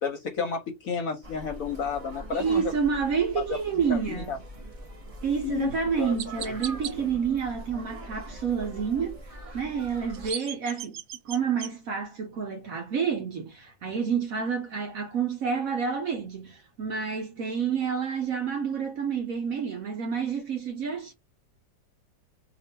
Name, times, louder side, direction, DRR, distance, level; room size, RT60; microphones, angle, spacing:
voice 1, 0.0-2.7 3.4-3.6 3.9-4.4 5.4-6.5, left 6 dB, 60° left, 0.9 m, -32 dB
sound 1, 1.2-10.3, right 1 dB, 30° right, 0.7 m, -42 dB
voice 2, 2.3-4.3 5.2-9.2 9.5-10.9 11.2-21.1, right 6 dB, 60° right, 1.1 m, -29 dB
Chirp tweet, 5.3-5.4 6.2-6.9 9.9-11.7, right 10 dB, 75° right, 0.8 m, -37 dB
3.0 x 2.5 x 4.1 m
omnidirectional pair, 2.0 m